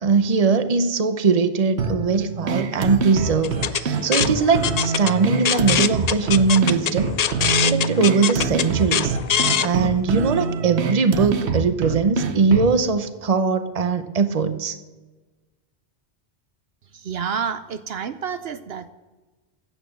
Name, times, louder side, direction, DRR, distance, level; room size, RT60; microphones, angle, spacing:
voice 1, 0.0-7.1 7.6-9.2 9.6-14.8, right 5 dB, 40° right, 10 dB, 0.9 m, -20 dB
sound 1, 1.8-12.8, right 4 dB, 90° right, 1.2 m, -26 dB
sound 2, 3.4-9.7, left 8 dB, 50° left, 0.5 m, -23 dB
voice 2, 16.9-18.9, right 7 dB, 70° right, 11 dB, 0.9 m, -29 dB
15.5 x 9.2 x 6.3 m, 1.2 s
omnidirectional pair, 1.1 m